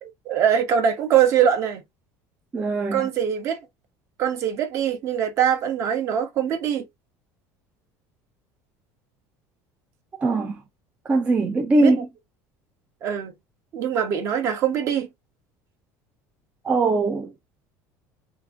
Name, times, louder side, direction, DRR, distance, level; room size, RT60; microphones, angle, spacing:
voice 1, 0.0-1.8 2.9-3.6 4.2-6.8 11.8-12.0 13.0-13.3 13.7-15.1, right 9 dB, 40° right, 0.8 m, -22 dB
voice 2, 2.5-3.0 10.2-10.6 11.1-12.1 16.6-17.3, right 3 dB, 15° right, 0.4 m, -21 dB
2.8 x 2.5 x 3.4 m
cardioid pair, 160°, 7 cm